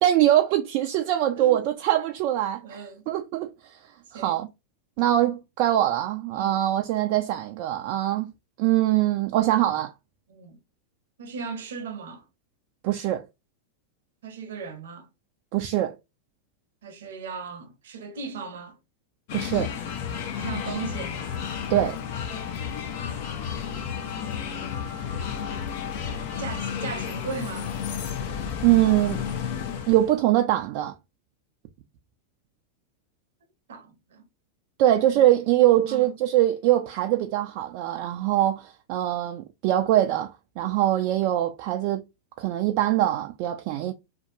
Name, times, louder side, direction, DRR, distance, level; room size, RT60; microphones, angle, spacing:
voice 1, 0.0-3.8 4.1-4.5 5.0-8.3 8.6-9.9 12.8-13.3 15.5-16.0 19.3-19.7 21.7-22.0 28.6-29.2 29.9-30.9 34.8-42.0 42.4-43.9, right 13 dB, 50° right, 0.3 m, -23 dB
voice 2, 2.6-3.2 4.1-4.4 6.3-6.6 10.3-10.6 11.2-12.3 14.2-15.1 16.8-18.8 20.3-21.2 24.2-24.8 26.4-27.7 33.7-34.2 35.1-35.2 35.9-36.1, right 5 dB, 70° right, 0.7 m, -37 dB
sound 1, 19.3-30.1, left 7 dB, 55° left, 0.6 m, -32 dB
2.7 x 2.2 x 2.5 m
hypercardioid pair, 100°, 0 cm